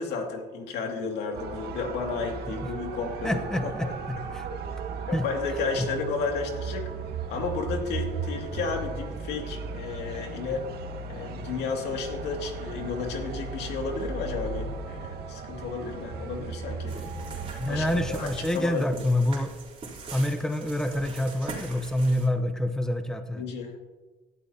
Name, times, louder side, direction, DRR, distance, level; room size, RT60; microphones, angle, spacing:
voice 1, 0.0-3.7 5.1-6.9 7.3-10.7 11.1-17.0 17.7-18.8 23.3-23.8, left 4 dB, 80° left, 2 dB, 2.4 m, -32 dB
sound 1, 1.3-18.5, right 4 dB, 70° right, 1.8 m, -36 dB
voice 2, 3.2-4.5 5.1-5.2 5.8-5.9 16.9-17.2 17.6-19.5 20.1-23.4, left 1 dB, 5° left, 7 dB, 1.0 m, -27 dB
sound 2, 16.9-22.3, right 4 dB, 35° right, 3.6 m, -42 dB
17.5 x 12.5 x 2.8 m, 1.2 s
cardioid pair, 110°, 17 cm